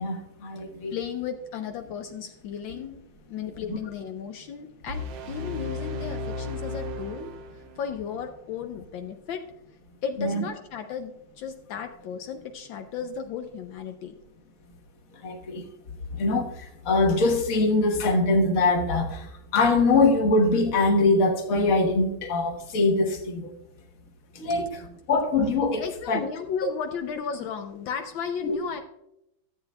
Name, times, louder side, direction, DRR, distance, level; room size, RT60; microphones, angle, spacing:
voice 1, 0.0-0.9 3.7-3.8 10.2-10.4 15.2-15.7 16.2-23.5 24.3-24.7 25.1-26.2 28.4-28.6, left 3 dB, 50° left, 1.4 m, -23 dB
voice 2, 0.9-3.0 3.3-9.4 10.0-14.2 24.6-24.7 25.8-28.8, left 7 dB, 80° left, 1.4 m, -35 dB
sound 1, 4.9-7.9, left 2 dB, 70° right, 1.5 m, -34 dB
14.0 x 8.0 x 2.3 m
omnidirectional pair, 2.2 m